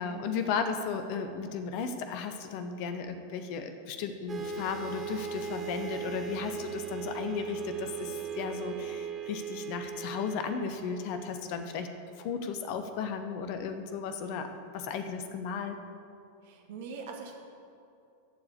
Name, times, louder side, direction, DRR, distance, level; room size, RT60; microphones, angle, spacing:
voice 1, 0.0-11.9 12.2-14.5 14.7-15.8, left 6 dB, 45° left, 8 dB, 1.0 m, -35 dB
sound 1, 4.3-12.0, right 7 dB, 20° right, 1.2 m, -39 dB
voice 2, 16.4-17.3, right 5 dB, 50° right, 2 dB, 1.7 m, -42 dB
14.0 x 4.9 x 8.3 m, 2.5 s
figure-of-eight pair, 90°, 0 cm